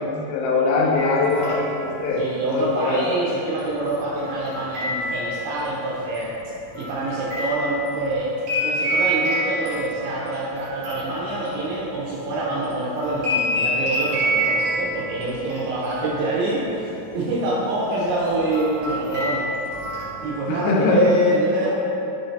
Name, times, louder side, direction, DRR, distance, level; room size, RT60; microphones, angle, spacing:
voice 1, 0.0-1.8 2.0-2.2 2.5-3.0 20.5-21.1, left 4 dB, 85° left, -2 dB, 2.8 m, -21 dB
sound 1, 1.0-1.9 3.6-5.7 6.1-12.4 12.7-15.6 15.8-16.8 17.0-17.4 17.9-20.4, equal, 60° right, 2.2 m, -28 dB
voice 2, 2.2-6.3 6.7-8.3 8.6-19.5 20.2-21.8, right 2 dB, 80° right, -6 dB, 2.3 m, -25 dB
6.2 x 2.6 x 3.2 m, 2.9 s
omnidirectional pair, 4.8 m